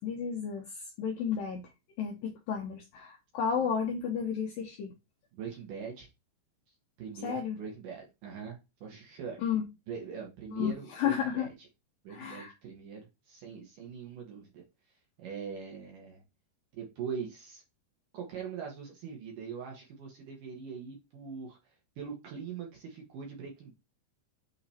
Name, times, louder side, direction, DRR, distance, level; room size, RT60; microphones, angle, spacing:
voice 1, 0.0-1.7 2.0-4.9 7.2-7.6 9.4-9.6 10.5-11.5 12.1-12.5, left 7 dB, 90° left, 1.9 m, -32 dB
voice 2, 5.3-6.1 6.7-9.4 9.9-11.5 12.0-14.6 15.2-16.2 16.7-17.6 18.1-21.6 22.0-23.7, right 6 dB, 70° right, 2.1 m, -42 dB
8.5 x 2.9 x 4.2 m
omnidirectional pair, 5.3 m